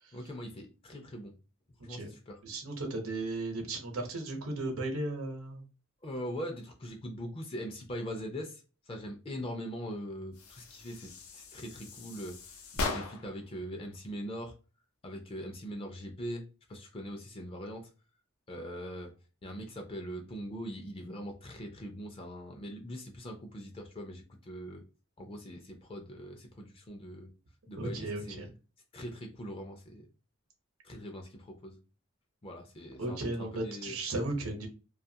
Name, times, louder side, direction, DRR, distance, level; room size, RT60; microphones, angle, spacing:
voice 1, 0.1-1.3 1.8-2.4 6.0-8.6 8.9-12.4 12.8-14.5 15.0-16.4 16.7-17.9 18.5-19.1 19.4-24.8 25.2-27.3 27.7-28.5 28.9-30.1 30.8-31.8 32.4-34.0, equal, 25° left, 3 dB, 0.4 m, -41 dB
voice 2, 2.4-5.6 27.7-28.5 33.0-34.7, right 2 dB, 80° right, 4 dB, 0.8 m, -35 dB
sound 1, 10.3-13.4, left 3 dB, 85° left, 0.6 m, -39 dB
2.6 x 2.3 x 2.7 m, 0.34 s
head